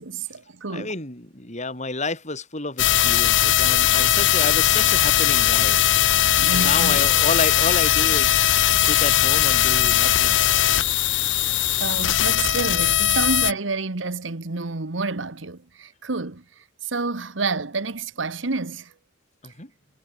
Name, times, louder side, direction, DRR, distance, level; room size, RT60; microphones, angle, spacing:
voice 1, 0.0-0.9 6.4-7.0 11.8-16.4 16.8-18.9, right 3 dB, 75° right, 1.3 m, -29 dB
voice 2, 0.7-5.8 6.5-8.4 8.7-10.4 19.4-19.7, left 3 dB, 40° left, 6.6 m, -30 dB
sound 1, 2.8-13.5, left 12 dB, 70° left, 0.9 m, -19 dB
head